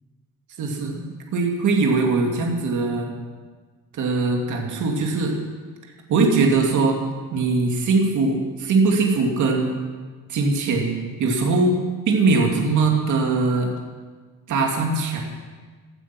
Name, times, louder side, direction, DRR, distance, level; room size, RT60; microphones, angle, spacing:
voice 1, 0.6-1.1 1.3-3.1 3.9-5.4 6.1-7.0 7.3-9.8 10.3-13.7 14.5-15.2, right 3 dB, 60° right, 1 dB, 2.6 m, -21 dB
17.5 x 12.5 x 6.0 m, 1.4 s
cardioid pair, 155°, 34 cm